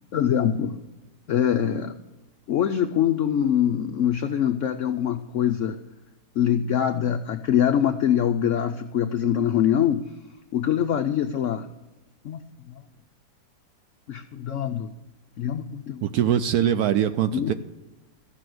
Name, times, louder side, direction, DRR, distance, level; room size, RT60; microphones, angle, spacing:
voice 1, 0.1-0.8 1.3-2.0 2.5-5.8 6.3-10.2 10.5-11.7 12.2-12.4 12.7-12.9 14.1-15.0 15.4-16.0 17.3-17.5, left 9 dB, 75° left, 8 dB, 0.7 m, -24 dB
voice 2, 16.0-17.5, right 10 dB, 70° right, 11 dB, 0.9 m, -22 dB
14.5 x 6.3 x 7.7 m, 1.1 s
omnidirectional pair, 1.9 m